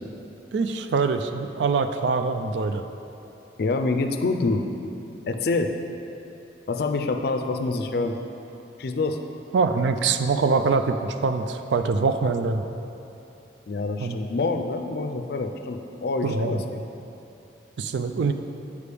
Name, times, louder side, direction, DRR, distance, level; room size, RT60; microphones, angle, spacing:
voice 1, 0.5-2.8 9.5-12.6 14.0-14.2 16.2-16.6 17.8-18.3, right 4 dB, 80° right, 8 dB, 0.4 m, -24 dB
voice 2, 3.6-4.6 5.3-5.7 6.7-8.2 8.8-9.2 13.7-16.8, left 3 dB, 60° left, 6 dB, 0.4 m, -26 dB
8.3 x 4.8 x 3.4 m, 3.0 s
head